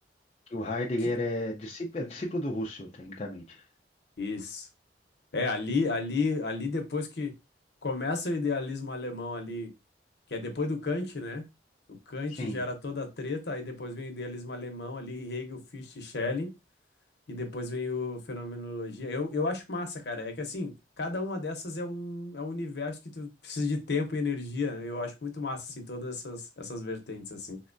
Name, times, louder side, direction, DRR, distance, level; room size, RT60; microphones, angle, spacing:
voice 1, 0.5-3.6 12.4-12.6, left 1 dB, 35° left, 0.4 m, -33 dB
voice 2, 4.2-4.7 5.3-7.3 7.8-9.7 10.3-11.5 12.1-16.5 17.3-27.6, left 3 dB, 65° left, 0.8 m, -33 dB
4.0 x 2.2 x 2.5 m
head